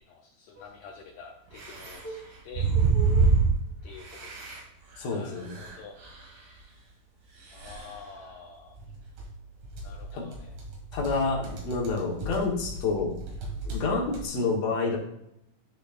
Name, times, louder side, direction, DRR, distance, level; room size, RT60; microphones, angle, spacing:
voice 1, 0.0-2.7 3.8-4.5 5.1-5.9 7.5-8.8 9.8-10.6, left 5 dB, 85° left, 0 dB, 1.6 m, -47 dB
sound 1, 0.6-0.7 1.5-3.7 4.0-4.6 4.9-5.0 5.3-6.2 6.6-6.7 7.5-8.0 8.7-9.4 9.6-13.9 14.1-14.3, right 4 dB, 90° right, 3.3 m, -29 dB
voice 2, 5.0-5.6 10.1-10.2 10.9-13.1 13.7-15.0, left 4 dB, 60° left, -2 dB, 2.2 m, -28 dB
10.5 x 6.1 x 2.5 m, 0.81 s
omnidirectional pair, 4.1 m